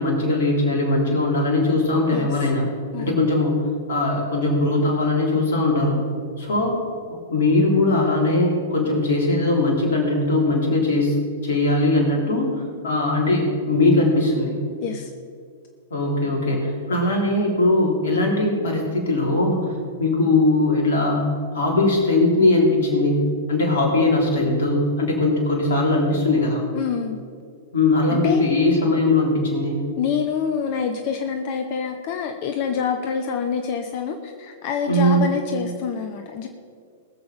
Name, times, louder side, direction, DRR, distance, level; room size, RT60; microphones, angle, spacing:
voice 1, 0.0-2.7 3.0-6.0 6.4-6.8 7.1-11.2 11.4-14.6 15.9-19.7 20.0-21.3 21.5-26.6 27.7-29.8 34.9-35.3, left 2 dB, 60° left, -1 dB, 3.8 m, -20 dB
voice 2, 26.7-27.2 28.1-28.4 30.0-36.5, left 7 dB, 45° left, 5 dB, 0.9 m, -26 dB
20.5 x 7.1 x 5.2 m, 2.2 s
figure-of-eight pair, 100°, 0 cm